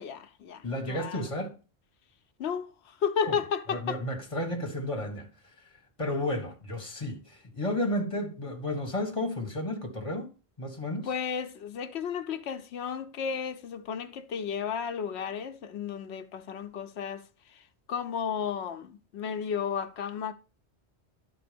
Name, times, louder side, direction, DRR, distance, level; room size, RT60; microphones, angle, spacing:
voice 1, 0.0-1.3 2.4-4.0 11.0-20.3, left 7 dB, 80° left, 1.0 m, -33 dB
voice 2, 0.6-1.5 3.2-3.3 3.7-5.3 5.6-5.7 6.0-10.3 10.6-11.1, left 1 dB, 30° left, 1.7 m, -32 dB
11.0 x 4.3 x 5.1 m
omnidirectional pair, 1.1 m